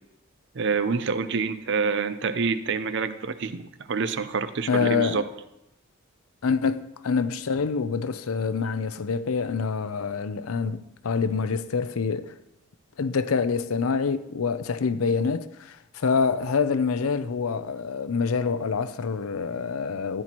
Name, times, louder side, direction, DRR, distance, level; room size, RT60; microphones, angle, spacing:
voice 1, 0.5-5.2, right 5 dB, 55° right, 0.6 m, -27 dB
voice 2, 4.7-5.2 6.4-12.4 13.0-20.2, left 5 dB, 85° left, 0.5 m, -26 dB
14.5 x 9.9 x 3.0 m
head